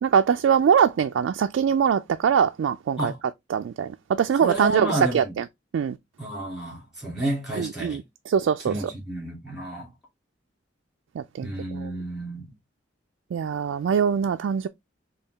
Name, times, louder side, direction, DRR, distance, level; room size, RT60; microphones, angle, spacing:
voice 1, 0.0-3.1 3.5-4.9 5.1-5.2 5.7-5.9 7.6-8.0 8.3-8.7 11.2-11.5 13.3-14.7, right 7 dB, 75° right, 0.3 m, -22 dB
voice 2, 4.4-5.4 6.2-8.0 8.6-9.9 11.4-12.5, right 1 dB, 5° right, 2.3 m, -31 dB
5.4 x 2.3 x 3.3 m
head